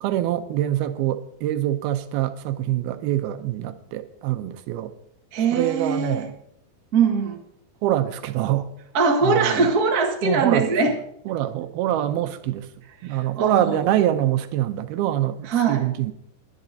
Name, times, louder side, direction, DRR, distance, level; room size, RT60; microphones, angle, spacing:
voice 1, 0.0-4.9 5.5-6.3 7.8-8.7 9.2-9.6 10.2-10.7 11.3-12.7 13.0-16.1, right 12 dB, 80° right, 9 dB, 2.6 m, -24 dB
voice 2, 5.3-6.2 6.9-7.4 8.9-11.0 13.0-13.9 15.4-15.9, right 4 dB, 50° right, 0 dB, 1.0 m, -22 dB
22.0 x 11.0 x 2.7 m, 0.75 s
omnidirectional pair, 4.5 m